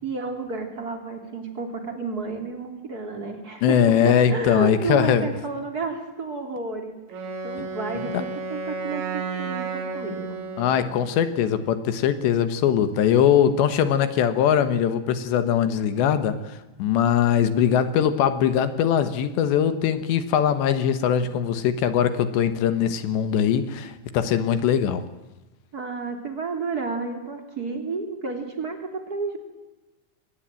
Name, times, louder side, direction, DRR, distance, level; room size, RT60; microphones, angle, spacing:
voice 1, 0.0-10.4 25.7-29.4, right 3 dB, 25° right, 5 dB, 2.8 m, -31 dB
voice 2, 3.6-5.3 10.6-25.0, left 9 dB, 70° left, 11 dB, 3.4 m, -21 dB
Wind instrument woodwind instrument, 7.1-11.1, right 4 dB, 70° right, 5.2 m, -32 dB
23.5 x 19.5 x 9.0 m, 1.1 s
omnidirectional pair, 5.4 m